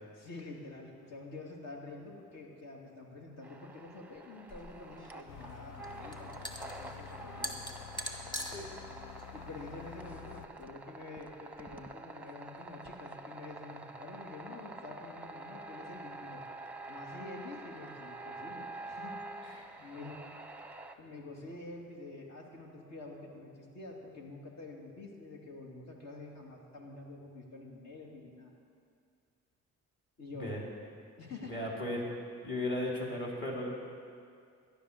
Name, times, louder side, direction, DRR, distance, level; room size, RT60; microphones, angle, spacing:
voice 1, 0.2-7.5 9.3-16.4 16.9-19.2 19.8-20.2 21.0-28.5 30.2-30.8 31.2-31.7, left 2 dB, 60° left, -1 dB, 2.7 m, -47 dB
sound 1, 3.4-21.0, right 2 dB, 5° right, 0.8 m, -47 dB
sound 2, 4.5-10.6, equal, 15° left, 1.8 m, -44 dB
sound 3, 5.3-10.5, left 9 dB, 80° left, 0.8 m, -49 dB
voice 2, 8.4-8.7 19.4-19.6 30.3-30.6 31.4-33.7, left 1 dB, 40° left, -2 dB, 3.3 m, -36 dB
13.0 x 10.5 x 6.8 m, 2.3 s
cardioid pair, 90°, 30 cm